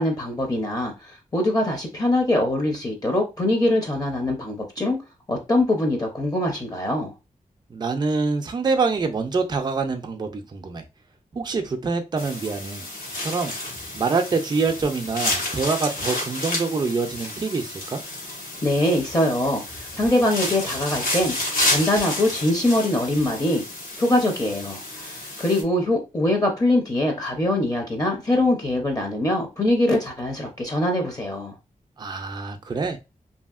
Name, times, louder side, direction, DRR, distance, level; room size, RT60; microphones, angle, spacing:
voice 1, 0.0-5.0 5.3-7.1 18.6-23.6 24.0-31.5, left 1 dB, 25° left, 0.5 m, -23 dB
voice 2, 7.7-10.8 11.3-12.9 13.2-13.5 13.9-18.0 32.0-33.0, right 4 dB, 30° right, 0.4 m, -25 dB
sound 1, 12.2-25.6, left 1 dB, 85° left, 1.1 m, -30 dB
2.7 x 2.7 x 2.4 m
wide cardioid pair, 130°, 14 cm